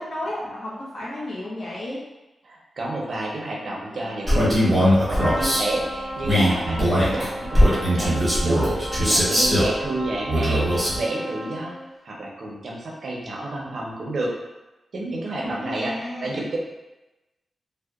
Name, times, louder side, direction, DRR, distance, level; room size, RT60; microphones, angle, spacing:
voice 1, 0.0-2.0 15.3-16.4, left 1 dB, 55° left, -6 dB, 0.6 m, -33 dB
voice 2, 2.4-11.7 12.0-14.3 14.9-16.6, right 2 dB, 60° right, -2 dB, 0.5 m, -30 dB
Wind instrument woodwind instrument, 3.7-11.7, right 2 dB, 80° left, 1.2 m, -41 dB
Male speech man speaking, 4.3-5.6 6.2-9.7 10.3-11.0, equal, 10° right, 0.8 m, -20 dB
Trumpet, 5.1-12.0, equal, 10° left, 1.5 m, -35 dB
2.7 x 2.0 x 2.3 m, 1.0 s
wide cardioid pair, 115°, 0 cm